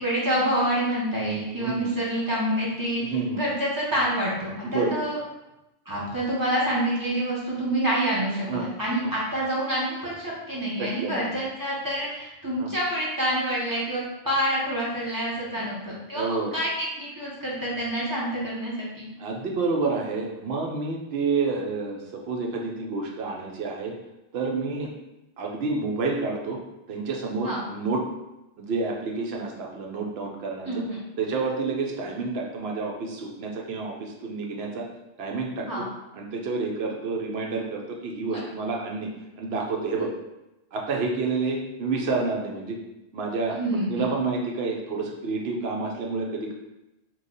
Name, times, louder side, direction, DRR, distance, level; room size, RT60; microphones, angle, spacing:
voice 1, 0.0-5.2 5.9-19.1 27.4-27.6 30.6-31.0 35.7-35.8 38.3-38.4 43.5-44.1, right 1 dB, 20° right, -6 dB, 0.8 m, -27 dB
voice 2, 1.6-1.9 3.0-3.4 4.6-5.0 8.5-8.7 10.8-11.3 12.6-12.7 15.6-15.7 16.1-16.5 19.2-23.9 24.3-24.9 25.4-26.6 26.9-28.0 28.6-30.8 31.2-34.9 35.2-35.9 36.1-39.1 39.4-40.1 40.7-42.8 43.1-43.6 43.9-46.5, right 4 dB, 70° right, 0 dB, 0.8 m, -29 dB
3.1 x 2.3 x 3.9 m, 0.94 s
omnidirectional pair, 1.1 m